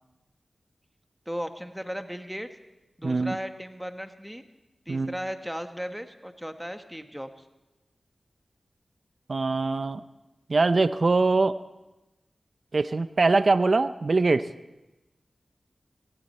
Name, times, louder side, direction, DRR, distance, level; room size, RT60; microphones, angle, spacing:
voice 1, 1.3-2.5 3.0-4.4 4.9-7.3, equal, 5° right, 7 dB, 1.4 m, -36 dB
voice 2, 3.0-3.4 4.9-5.1 9.3-10.0 10.5-11.6 12.7-14.5, right 3 dB, 60° right, 13 dB, 0.6 m, -23 dB
17.0 x 16.5 x 4.4 m, 1.0 s
cardioid pair, 45°, 0 cm